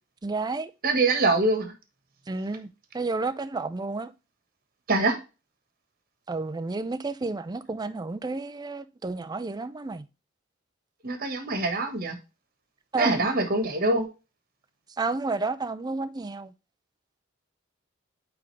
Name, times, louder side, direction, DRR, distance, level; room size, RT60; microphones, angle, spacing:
voice 1, 0.2-0.7 2.3-4.1 6.3-10.0 12.9-13.3 15.0-16.5, right 3 dB, 20° right, 0.4 m, -31 dB
voice 2, 0.8-1.7 4.9-5.2 11.0-12.2 13.0-14.1, right 2 dB, 50° right, 1.3 m, -24 dB
8.7 x 3.5 x 3.2 m
head